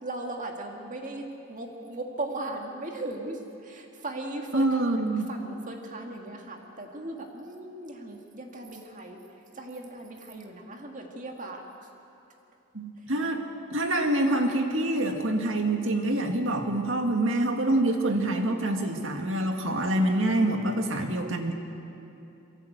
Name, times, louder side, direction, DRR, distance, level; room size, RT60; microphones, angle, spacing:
voice 1, 0.0-4.8 5.3-9.2 9.5-11.9, right 2 dB, 40° right, 2 dB, 2.0 m, -38 dB
voice 2, 4.5-5.3 12.7-13.4 13.7-21.5, right 1 dB, 65° right, 4 dB, 2.0 m, -26 dB
23.0 x 16.5 x 8.1 m, 2.8 s
head